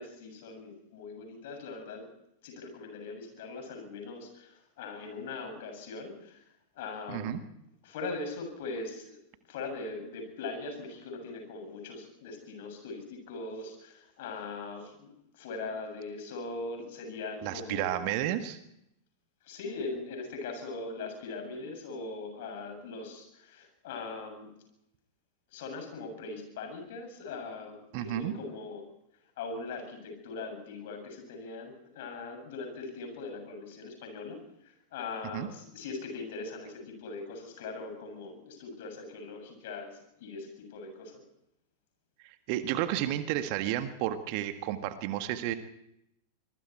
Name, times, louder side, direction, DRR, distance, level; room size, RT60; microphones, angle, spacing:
voice 1, 0.0-2.1 2.4-6.4 6.7-7.4 7.8-9.2 9.5-18.1 19.4-24.5 25.5-28.8 29.4-34.4 34.6-41.2, left 3 dB, 55° left, 5 dB, 7.4 m, -40 dB
voice 2, 7.1-7.4 17.4-18.6 27.9-28.3 35.3-35.5 42.2-45.5, right 12 dB, 45° right, 9 dB, 1.6 m, -32 dB
25.5 x 22.0 x 4.6 m, 0.79 s
figure-of-eight pair, 90°, 0 cm